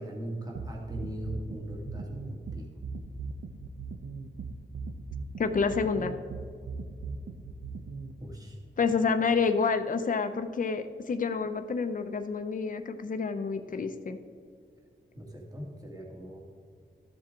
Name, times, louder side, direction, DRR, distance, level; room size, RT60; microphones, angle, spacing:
voice 1, 0.0-2.7 8.2-8.6 15.1-16.4, equal, 20° right, -2 dB, 1.9 m, -39 dB
sound 1, 0.5-8.1, right 5 dB, 90° right, 0.8 m, -38 dB
voice 2, 5.4-6.2 8.8-14.2, left 5 dB, 45° left, 7 dB, 0.6 m, -28 dB
13.0 x 7.3 x 3.7 m, 2.3 s
wide cardioid pair, 95°, 19 cm